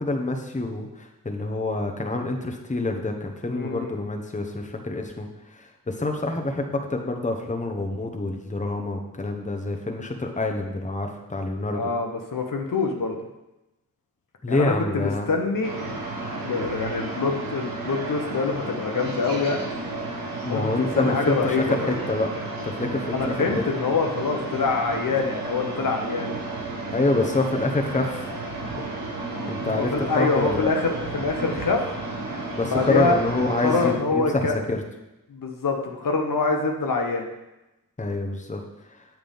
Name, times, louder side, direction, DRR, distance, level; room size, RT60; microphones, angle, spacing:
voice 1, 0.0-5.3 5.5-11.9 14.4-15.3 20.4-22.3 22.6-23.5 26.9-28.3 29.5-30.7 32.5-34.8 38.0-38.6 38.9-39.0, left 2 dB, 20° left, 3 dB, 1.0 m, -27 dB
voice 2, 3.5-4.0 11.7-13.2 14.5-16.0 16.4-19.7 20.5-21.9 23.1-26.3 29.7-31.8 32.7-33.2 33.6-34.5 35.3-37.3, left 4 dB, 65° left, 3 dB, 1.0 m, -25 dB
sound 1, 15.6-33.9, right 2 dB, 75° right, 1.4 m, -33 dB
7.4 x 5.9 x 3.5 m, 0.96 s
cardioid pair, 55°, 34 cm